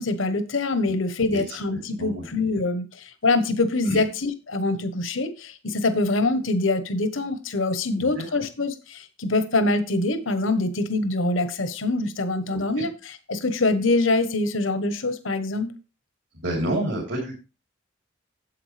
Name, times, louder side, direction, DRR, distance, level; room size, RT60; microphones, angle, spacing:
voice 1, 0.0-15.7, left 2 dB, 80° left, 10 dB, 1.1 m, -24 dB
voice 2, 2.0-2.3 3.9-4.0 7.9-8.2 12.5-12.8 16.3-17.4, right 1 dB, 70° right, -3 dB, 3.4 m, -29 dB
9.7 x 7.9 x 3.3 m, 0.30 s
head